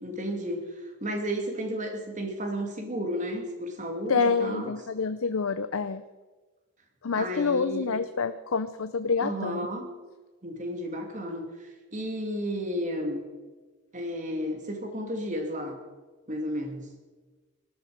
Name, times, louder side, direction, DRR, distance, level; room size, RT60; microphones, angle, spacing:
voice 1, 0.0-4.7 7.2-7.9 9.2-9.9 10.4-13.2 13.9-15.8 16.3-16.9, equal, 35° right, 3 dB, 2.7 m, -33 dB
voice 2, 4.1-6.0 7.0-9.6, left 5 dB, 80° left, 11 dB, 0.6 m, -27 dB
19.0 x 12.5 x 5.2 m, 1.3 s
head